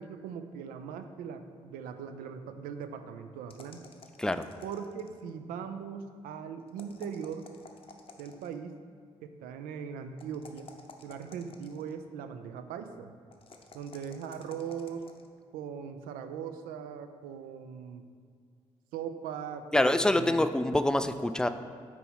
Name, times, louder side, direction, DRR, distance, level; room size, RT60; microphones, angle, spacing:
voice 1, 0.0-3.8 4.6-7.5 8.2-8.8 9.2-10.7 11.0-13.1 13.7-15.1 15.5-18.1 18.9-20.4, right 7 dB, 70° right, 8 dB, 0.4 m, -40 dB
sound 1, 3.5-5.3 6.7-8.6 10.2-12.0 13.3-15.3, left 4 dB, 35° left, 0.7 m, -53 dB
voice 2, 19.7-21.5, left 1 dB, 5° left, 10 dB, 0.3 m, -25 dB
4.6 x 4.1 x 5.6 m, 2.2 s
hypercardioid pair, 40°, 15 cm